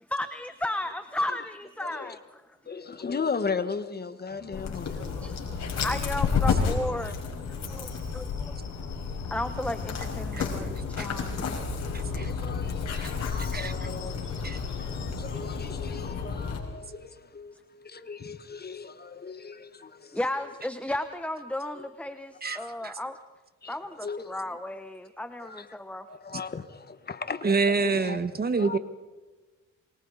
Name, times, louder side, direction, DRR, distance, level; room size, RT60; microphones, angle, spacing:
voice 1, 0.1-2.4 2.7-2.8 4.5-4.6 4.9-8.9 9.3-11.6 17.5-17.6 20.1-23.2 23.7-26.1, left 1 dB, 5° left, 1.0 m, -34 dB
voice 2, 1.8-2.2 2.6-5.4 7.0-7.1 7.7-7.8 11.8-20.2 21.8-21.9 22.4-22.9 23.6-24.5 25.4-25.7 26.1-28.2 28.6-28.8, left 5 dB, 30° left, 1.5 m, -37 dB
sound 1, 4.3-16.7, right 4 dB, 80° right, 6.2 m, -50 dB
Dog, 4.5-16.6, left 5 dB, 60° left, 5.4 m, -31 dB
voice 3, 11.9-12.3 12.9-13.1 13.5-13.7 14.4-14.6 22.4-22.9 27.4-28.8, right 4 dB, 30° right, 1.3 m, -27 dB
27.5 x 23.5 x 4.1 m
cardioid pair, 90°, 30 cm